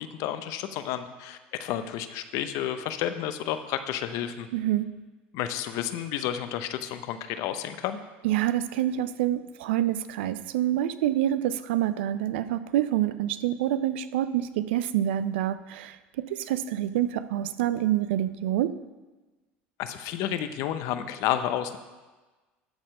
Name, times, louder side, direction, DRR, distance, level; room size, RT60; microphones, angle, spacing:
voice 1, 0.0-4.5 5.3-8.0 19.8-21.8, left 11 dB, 65° left, 10 dB, 0.7 m, -31 dB
voice 2, 4.5-4.9 8.2-16.0 16.3-18.7, right 12 dB, 80° right, 14 dB, 0.4 m, -27 dB
12.5 x 4.3 x 5.4 m, 1.2 s
hypercardioid pair, 80°, 6 cm